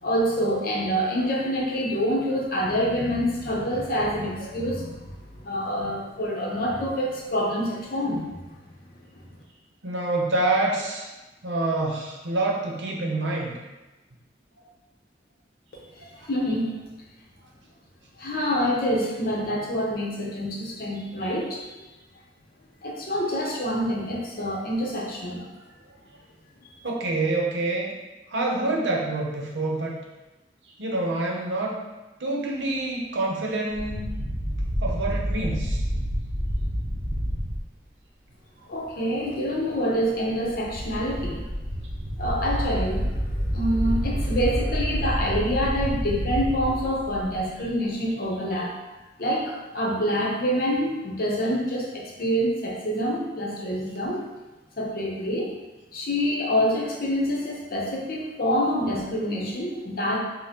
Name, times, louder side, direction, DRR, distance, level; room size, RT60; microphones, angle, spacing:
voice 1, 0.0-8.4 9.1-9.2 15.7-16.6 18.2-21.8 22.8-25.5 26.6-26.7 38.7-41.4 42.2-48.7 49.2-54.2 54.8-55.5 55.9-60.2, equal, 55° left, -3 dB, 0.8 m, -26 dB
voice 2, 9.8-11.1 11.4-13.5 16.2-16.3 26.8-27.9 28.3-30.0 30.8-31.8 32.2-34.1 34.8-35.8, right 2 dB, 90° right, -1 dB, 0.7 m, -26 dB
sound 1, 33.7-37.6 40.4-47.7, equal, 45° right, 0.7 m, -28 dB
5.1 x 2.1 x 2.9 m, 1.1 s
head